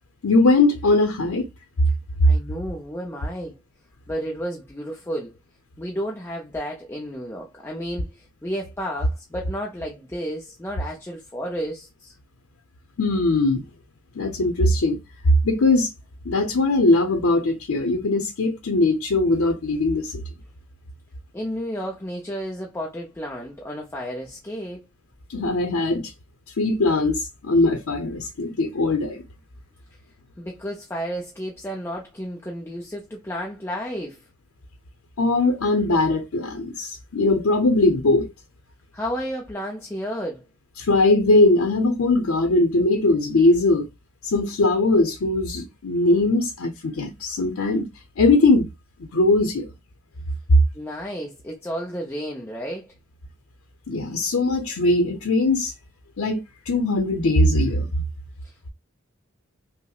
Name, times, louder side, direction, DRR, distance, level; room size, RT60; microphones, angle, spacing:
voice 1, 0.2-1.5 13.0-13.6 14.2-15.0 15.3-15.9 16.2-20.2 25.3-26.1 26.6-29.2 35.2-38.3 40.8-43.9 44.2-47.9 48.2-48.7 49.1-49.7 53.9-55.7 56.2-57.9, left 2 dB, 85° left, 0.6 m, -20 dB
voice 2, 2.2-3.5 4.1-5.4 5.8-12.1 21.3-24.8 30.4-34.2 38.9-40.4 50.7-52.9 58.4-58.7, equal, 10° left, 0.5 m, -32 dB
5.5 x 2.0 x 2.3 m
head